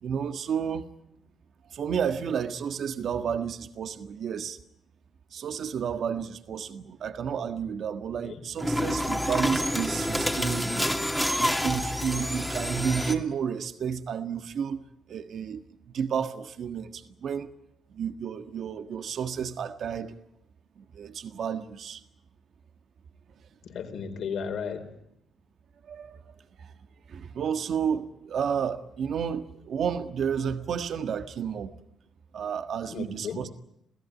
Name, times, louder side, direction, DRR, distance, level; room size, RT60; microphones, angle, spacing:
voice 1, 0.0-0.9 1.7-4.6 5.3-10.9 11.4-14.8 15.1-17.5 17.9-20.1 20.8-22.0 25.8-26.2 26.6-26.7 27.1-31.7 32.3-33.5, right 7 dB, 60° right, 1.6 m, -31 dB
sound 1, 8.6-13.1, equal, ahead, 2.4 m, -28 dB
voice 2, 23.6-25.0 32.9-33.4, left 6 dB, 65° left, 4.6 m, -34 dB
28.0 x 16.5 x 9.6 m
cardioid pair, 90°, 0 cm